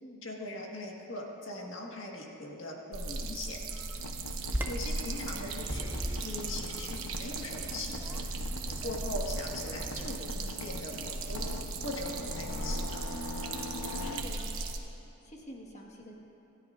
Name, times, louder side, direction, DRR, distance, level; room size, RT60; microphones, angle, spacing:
voice 1, 0.2-3.6 4.7-5.9 6.2-8.3 8.8-11.5 11.8-13.0, left 1 dB, 60° left, -1 dB, 1.8 m, -40 dB
sound 1, 2.9-14.8, right 3 dB, 70° right, 1.1 m, -37 dB
sound 2, 3.9-14.4, left 2 dB, 90° left, 0.7 m, -43 dB
Bird vocalization bird call bird song, 4.4-10.1, equal, 10° right, 0.6 m, -40 dB
voice 2, 13.5-14.7 15.2-16.1, equal, 30° left, -1 dB, 1.6 m, -48 dB
27.0 x 13.0 x 2.6 m, 3.0 s
head